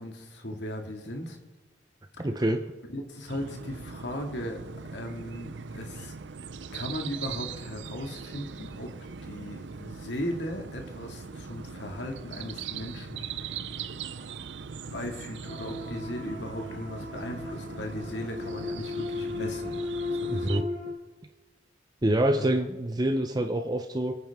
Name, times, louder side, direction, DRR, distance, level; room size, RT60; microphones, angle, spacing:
voice 1, 0.0-1.4 2.2-2.3 2.9-4.6 4.9-6.1 6.7-13.3 14.9-19.8 20.1-20.7 22.3-22.6, left 1 dB, 75° left, 3 dB, 2.2 m, -37 dB
voice 2, 2.2-2.6 20.3-20.6 22.0-24.2, right 1 dB, 20° right, 6 dB, 0.7 m, -26 dB
sound 1, 3.3-20.6, right 5 dB, 80° right, 0.6 m, -40 dB
sound 2, 15.4-20.9, left 3 dB, 40° left, 3.2 m, -35 dB
26.5 x 9.3 x 3.6 m, 1.2 s
head